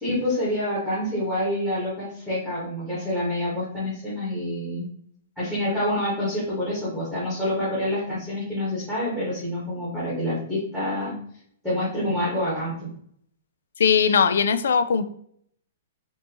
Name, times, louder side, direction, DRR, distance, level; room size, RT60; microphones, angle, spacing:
voice 1, 0.0-4.9 5.4-11.1 11.6-12.7, left 1 dB, ahead, -9 dB, 1.4 m, -27 dB
voice 2, 13.8-15.0, left 6 dB, 80° left, 11 dB, 0.4 m, -19 dB
4.5 x 2.7 x 2.9 m, 0.64 s
hypercardioid pair, 175°, 0 cm